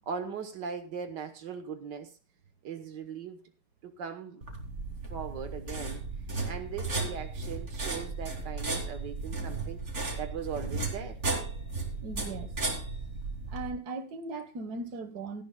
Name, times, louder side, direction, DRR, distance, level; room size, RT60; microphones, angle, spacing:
voice 1, 0.1-2.2 2.6-3.4 3.8-4.4 5.1-6.0 6.4-9.8 10.2-11.2, right 7 dB, 80° right, 7 dB, 1.9 m, -39 dB
sound 1, 4.4-13.7, right 3 dB, 40° right, 3.2 m, -35 dB
voice 2, 12.0-12.6 13.5-15.4, right 3 dB, 65° right, 9 dB, 1.9 m, -38 dB
17.5 x 14.5 x 2.3 m, 0.30 s
omnidirectional pair, 1.9 m